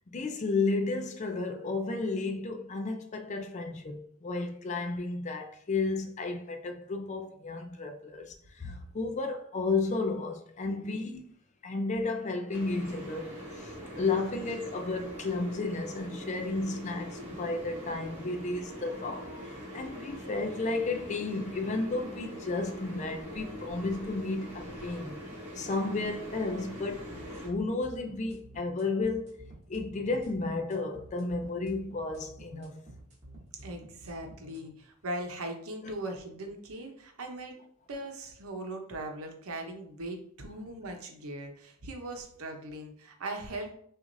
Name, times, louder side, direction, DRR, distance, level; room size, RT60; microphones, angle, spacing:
voice 1, 0.1-11.3 11.6-25.2 25.6-27.1 27.4-29.4 29.7-32.8 35.8-35.9, left 3 dB, 30° left, 0.4 m, -33 dB
sound 1, 12.5-27.5, equal, 10° right, 1.7 m, -43 dB
sound 2, 27.1-34.7, right 1 dB, 30° right, 1.2 m, -50 dB
voice 2, 33.6-37.6 37.9-43.8, right 1 dB, 70° right, 0.8 m, -39 dB
6.0 x 2.5 x 2.6 m
head